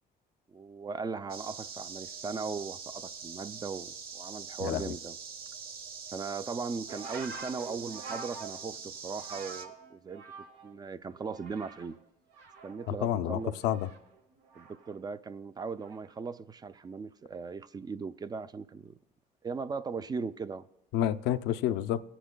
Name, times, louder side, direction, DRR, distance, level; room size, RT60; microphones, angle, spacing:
voice 1, 0.5-5.2 6.1-10.2 10.6-12.0 12.6-13.6 14.6-19.0 19.4-20.6, right 5 dB, 25° right, 0.3 m, -38 dB
sound 1, 1.3-9.6, right 6 dB, 65° right, 1.0 m, -44 dB
sound 2, 6.9-10.8 11.1-12.0 12.3-15.0 15.8-16.2, right 4 dB, 90° right, 1.1 m, -47 dB
voice 2, 13.0-13.9 20.9-22.0, left 11 dB, 90° left, 0.5 m, -29 dB
18.0 x 10.0 x 2.2 m
cardioid pair, 110°, 17 cm